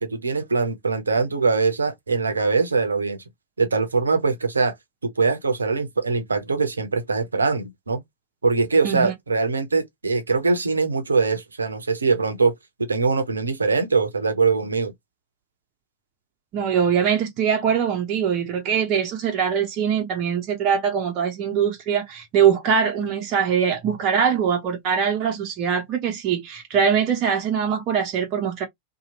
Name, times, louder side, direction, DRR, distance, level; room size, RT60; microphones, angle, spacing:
voice 1, 0.0-3.2 3.6-4.7 5.2-8.0 8.4-12.5 12.8-14.9, right 4 dB, 75° right, 0.7 m, -22 dB
voice 2, 8.8-9.1 16.5-28.6, right 7 dB, 40° right, 0.7 m, -22 dB
2.8 x 2.3 x 2.8 m
figure-of-eight pair, 90°, 0 cm